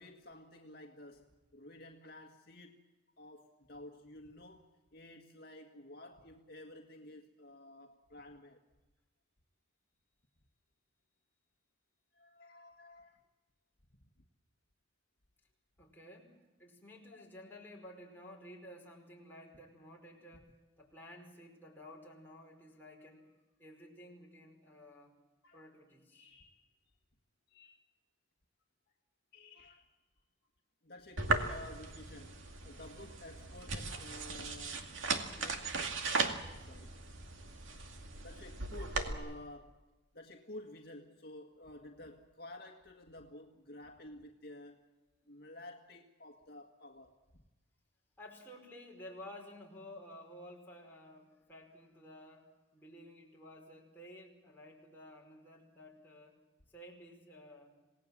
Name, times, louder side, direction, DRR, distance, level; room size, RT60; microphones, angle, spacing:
voice 1, 0.0-2.8 3.2-8.6 12.1-13.2 25.4-25.6 26.1-26.7 27.5-27.8 29.3-30.0 30.8-32.4 32.6-34.9 35.4-35.9 36.3-37.0 38.2-39.8 40.1-44.8 45.3-47.2, left 1 dB, 55° left, 1.8 m, -52 dB
voice 2, 15.8-23.3 23.6-25.2 25.5-26.3 37.7-38.3 48.2-56.4 56.7-57.8, left 1 dB, 10° left, 5.2 m, -53 dB
sound 1, 31.2-39.1, right 3 dB, 80° right, 2.3 m, -37 dB
27.5 x 18.5 x 7.4 m
head